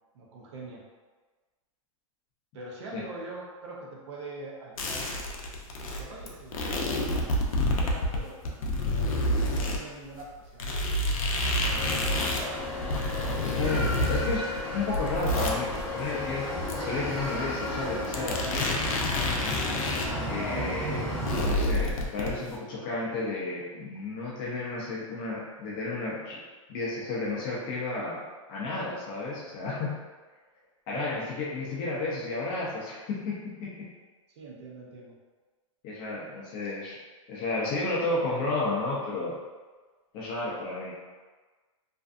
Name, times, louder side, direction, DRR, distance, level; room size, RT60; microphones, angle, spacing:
voice 1, 0.1-0.8 2.5-5.2 5.7-7.2 7.6-11.0 11.5-12.6 30.9-31.1 34.3-35.1 36.6-36.7, right 2 dB, 55° right, -3 dB, 0.7 m, -44 dB
sound 1, 4.8-9.8 10.2-10.3 10.6-20.1 20.4-20.5 20.7-22.6, left 1 dB, 80° left, 0.5 m, -29 dB
sound 2, 11.6-21.5, left 1 dB, ahead, 0.9 m, -33 dB
voice 2, 13.5-14.4 14.7-16.5 16.8-18.8 20.2-26.4 26.7-28.2 28.5-30.0 30.9-33.7 35.8-37.0 37.3-39.4 40.1-40.9, left 3 dB, 30° left, -5 dB, 0.5 m, -32 dB
2.5 x 2.3 x 2.4 m, 1.3 s
supercardioid pair, 160°, 18 cm